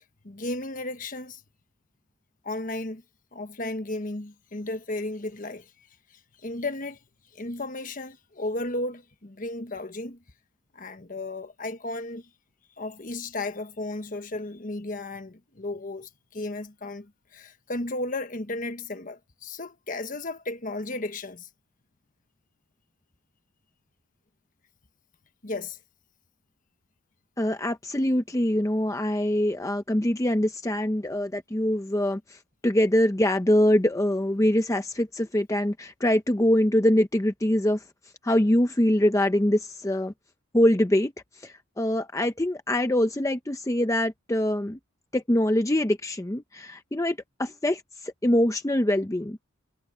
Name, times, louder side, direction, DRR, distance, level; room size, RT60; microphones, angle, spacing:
voice 1, 0.0-1.4 2.4-3.0 3.3-5.7 6.4-7.0 7.3-10.2 10.7-12.3 12.8-21.5 25.4-25.8, left 2 dB, 40° left, 1.2 m, -34 dB
voice 2, 27.4-32.2 32.6-37.8 38.2-40.1 40.5-41.1 41.4-44.8 45.1-49.4, left 1 dB, 15° left, 0.6 m, -24 dB
head